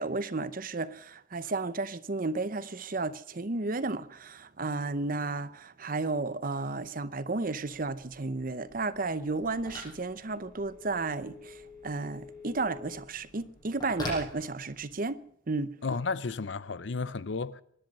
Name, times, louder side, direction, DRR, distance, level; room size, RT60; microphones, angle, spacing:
voice 1, 0.0-11.5 11.8-15.2 15.5-15.7, right 3 dB, 45° right, 0.8 m, -33 dB
Telephone, 7.3-15.1, left 1 dB, 20° left, 7.2 m, -45 dB
voice 2, 15.8-17.6, left 4 dB, 70° left, 0.6 m, -33 dB
23.5 x 11.0 x 5.4 m
head